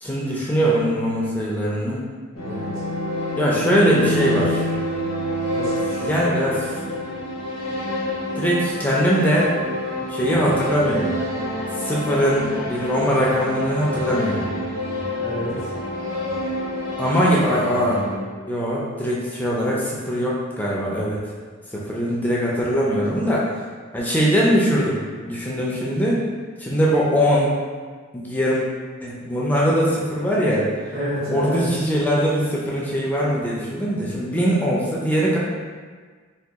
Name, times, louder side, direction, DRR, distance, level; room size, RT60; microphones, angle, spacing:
voice 1, 0.0-2.0 3.4-4.6 6.0-6.7 8.4-9.6 10.1-11.2 11.7-14.5 17.0-18.0 18.5-21.2 21.7-23.5 23.9-26.2 26.6-27.5 28.1-28.6 29.0-30.7 31.3-35.4, equal, 10° left, -5 dB, 0.4 m, -21 dB
sound 1, 2.3-18.2, left 1 dB, 75° left, 0.7 m, -27 dB
voice 2, 5.5-6.1 15.1-15.7 30.9-31.6, equal, 75° right, -10 dB, 1.3 m, -29 dB
2.8 x 2.3 x 3.4 m, 1.5 s
head